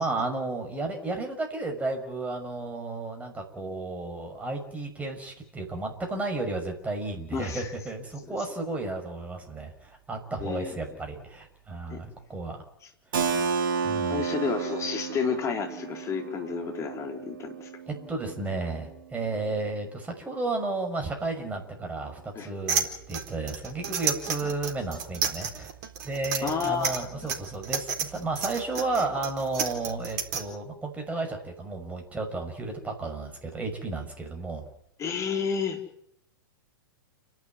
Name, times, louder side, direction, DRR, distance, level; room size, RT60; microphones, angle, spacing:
voice 1, 0.0-12.6 13.8-14.2 17.9-25.7 26.0-34.7, right 2 dB, 10° right, 3 dB, 6.2 m, -33 dB
voice 2, 7.3-7.7 8.2-8.4 10.4-10.8 11.9-12.0 14.1-17.7 22.3-22.5 24.4-24.5 26.4-27.3 35.0-35.8, left 6 dB, 25° left, 4 dB, 4.1 m, -31 dB
Keyboard (musical), 13.1-18.7, right 6 dB, 70° right, 2.5 m, -32 dB
sound 1, 22.7-30.4, right 7 dB, 50° right, 3.9 m, -30 dB
30.0 x 12.0 x 9.7 m, 0.74 s
hypercardioid pair, 110°, 12 cm